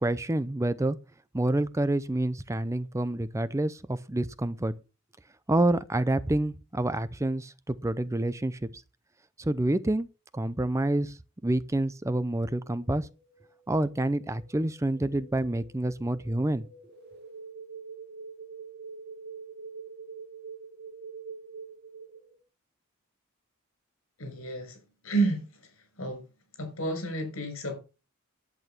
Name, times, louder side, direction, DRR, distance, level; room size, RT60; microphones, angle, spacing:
voice 1, 0.0-1.0 1.3-4.7 5.5-8.8 9.4-10.1 10.3-13.1 13.7-16.6, right 1 dB, 15° right, 0.5 m, -28 dB
sound 1, 12.8-22.4, right 5 dB, 50° right, 2.3 m, -46 dB
voice 2, 24.2-24.8 25.0-25.7 26.0-26.2 26.5-27.8, right 2 dB, 70° left, 6.6 m, -30 dB
11.0 x 8.8 x 5.9 m
head